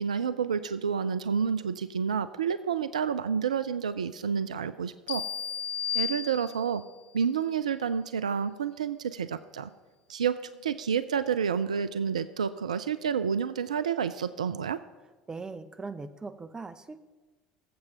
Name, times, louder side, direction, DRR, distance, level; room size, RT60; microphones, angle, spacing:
voice 1, 0.0-5.2 5.9-6.8 7.1-9.7 10.1-10.3 10.6-14.8, right 7 dB, 80° right, 14 dB, 0.3 m, -29 dB
sound 1, 5.1-6.9, left 8 dB, 45° left, 1.1 m, -33 dB
voice 2, 15.3-17.0, right 4 dB, 20° right, 11 dB, 0.7 m, -40 dB
21.0 x 7.7 x 3.0 m, 1.2 s
figure-of-eight pair, 65°, 4 cm